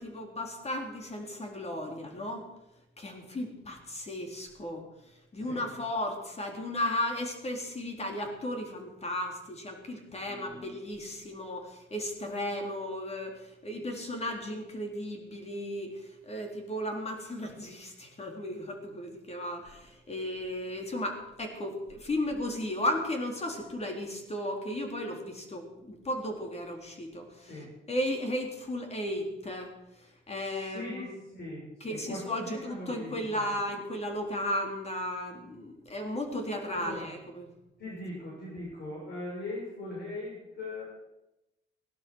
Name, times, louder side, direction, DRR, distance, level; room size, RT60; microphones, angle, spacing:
voice 1, 0.0-2.4 3.0-4.8 5.3-27.5 27.9-29.7 30.3-31.2 31.8-32.6 32.9-37.5 37.9-38.0, left 1 dB, 30° left, 3 dB, 3.9 m, -35 dB
voice 2, 5.3-5.7 10.1-10.6 27.4-27.7 30.4-33.5 36.7-37.1 37.8-40.9, left 2 dB, 55° left, -5 dB, 7.1 m, -41 dB
17.0 x 12.0 x 6.4 m, 0.91 s
cardioid pair, 90°, 20 cm